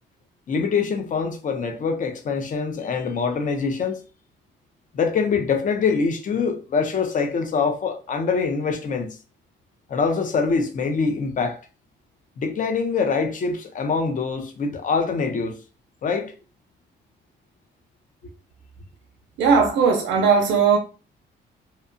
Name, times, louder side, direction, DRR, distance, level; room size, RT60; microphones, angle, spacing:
voice 1, 0.5-4.0 4.9-9.2 9.9-11.6 12.4-15.6 16.0-16.3, left 5 dB, 40° left, 0.5 m, -24 dB
voice 2, 19.4-20.8, right 5 dB, 80° right, 0.5 m, -18 dB
2.8 x 2.2 x 2.5 m
cardioid pair, 90°, 20 cm